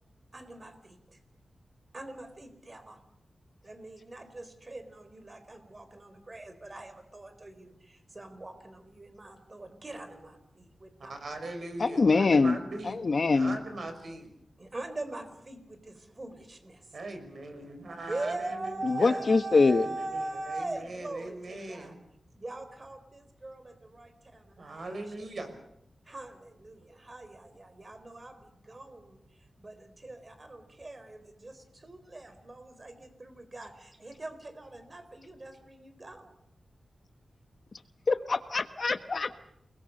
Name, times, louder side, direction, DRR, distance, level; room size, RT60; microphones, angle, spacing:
voice 1, 0.3-1.2 1.9-3.0 3.6-11.1 14.6-17.0 18.1-22.0 22.3-25.0 26.0-36.3, right 2 dB, 30° right, 9 dB, 4.1 m, -42 dB
voice 2, 11.1-13.0 13.3-14.3 16.9-19.2 19.7-22.0 24.6-25.5, right 2 dB, 60° right, 7 dB, 5.7 m, -40 dB
voice 3, 11.8-12.6 12.9-13.5 18.8-19.8 38.1-39.4, left 4 dB, 50° left, 10 dB, 1.3 m, -24 dB
29.5 x 21.0 x 6.6 m, 0.76 s
wide cardioid pair, 120°, 0 cm